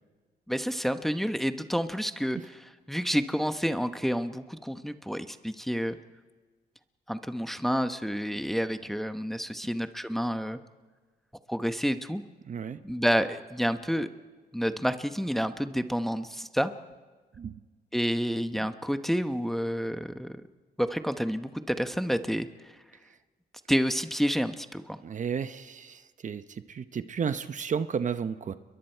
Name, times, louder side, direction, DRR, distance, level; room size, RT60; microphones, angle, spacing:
voice 1, 0.5-6.0 7.1-10.6 11.5-12.2 12.8-14.1 14.5-16.7 17.9-20.4 20.8-22.5 23.7-25.0, equal, ahead, 9 dB, 1.0 m, -29 dB
voice 2, 12.5-12.8 17.4-17.5 25.0-28.5, right 7 dB, 45° right, 11 dB, 0.8 m, -33 dB
29.5 x 22.5 x 4.5 m, 1.4 s
cardioid pair, 90°, 17 cm